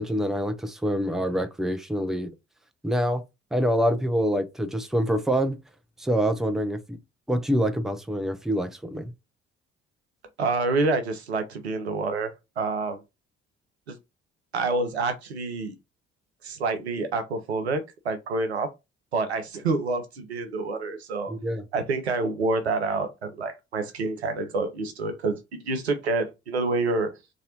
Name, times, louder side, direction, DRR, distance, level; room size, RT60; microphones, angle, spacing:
voice 1, 0.0-2.3 2.8-3.2 3.5-5.6 6.0-7.0 7.3-9.1 21.3-21.6, equal, ahead, 0.6 m, -26 dB
voice 2, 10.4-13.0 13.9-14.0 14.5-15.7 16.4-18.7 19.1-21.4 21.7-27.1, right 3 dB, 85° right, 0.6 m, -27 dB
4.0 x 2.7 x 2.7 m
figure-of-eight pair, 45°, 32 cm